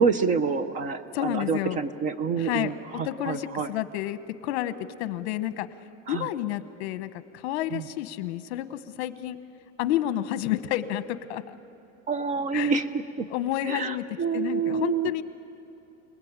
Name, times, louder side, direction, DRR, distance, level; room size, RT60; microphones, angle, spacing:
voice 1, 0.0-3.7 6.1-6.3 7.7-7.9 12.1-13.3 13.6-15.2, right 5 dB, 20° right, 12 dB, 0.6 m, -27 dB
voice 2, 1.1-1.8 2.4-2.7 3.0-5.7 6.1-9.4 9.8-11.6 12.5-12.7 13.3-14.0 14.3-15.2, left 13 dB, 65° left, 12 dB, 1.2 m, -30 dB
29.5 x 19.5 x 8.9 m, 2.7 s
supercardioid pair, 170°, 34 cm